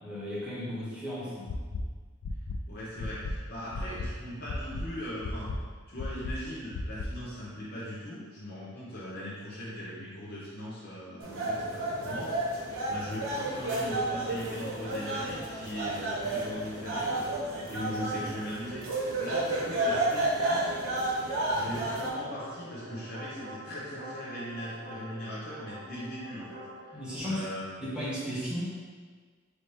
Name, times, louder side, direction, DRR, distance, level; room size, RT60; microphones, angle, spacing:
voice 1, 0.0-1.5 26.9-27.4 27.8-28.6, equal, 5° right, -8 dB, 0.9 m, -35 dB
sound 1, 1.5-1.8 2.2-2.6 3.0-3.3 3.7-4.1 4.5-4.8 5.2-5.6 6.0-6.3 6.7-7.1, left 4 dB, 90° left, 0.4 m, -34 dB
voice 2, 2.7-5.5 5.9-12.3 12.9-17.3 17.7-20.8 21.5-27.6, equal, 45° left, -9 dB, 0.9 m, -39 dB
sound 2, 11.2-22.1, right 2 dB, 85° right, 0.9 m, -31 dB
sound 3, 15.9-27.2, right 2 dB, 45° right, 0.5 m, -46 dB
4.1 x 3.1 x 3.3 m, 1.5 s
head